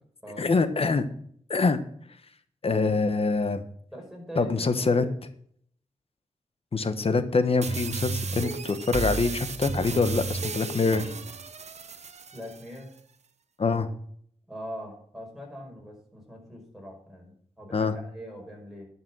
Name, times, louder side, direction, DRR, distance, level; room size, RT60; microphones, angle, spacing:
voice 1, 0.4-1.0 1.5-1.8 2.6-3.6 4.4-5.0 6.7-11.1 13.6-13.9 17.7-17.9, left 4 dB, 50° left, 11 dB, 1.1 m, -25 dB
voice 2, 3.9-5.2 12.3-12.9 14.5-18.9, equal, 5° right, 0 dB, 5.2 m, -42 dB
sound 1, 7.6-12.6, right 4 dB, 60° right, 0.8 m, -33 dB
11.5 x 5.9 x 6.1 m, 0.63 s
cardioid pair, 65°, 13 cm